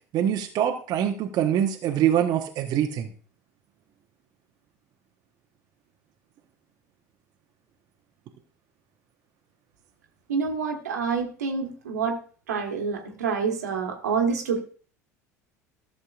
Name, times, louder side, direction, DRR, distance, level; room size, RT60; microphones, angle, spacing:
voice 1, 0.1-3.1, right 10 dB, 50° right, 3 dB, 1.0 m, -24 dB
voice 2, 10.3-12.2 12.5-14.6, right 5 dB, 80° right, 3 dB, 1.4 m, -27 dB
14.0 x 6.6 x 2.4 m, 0.41 s
hypercardioid pair, 70°, 9 cm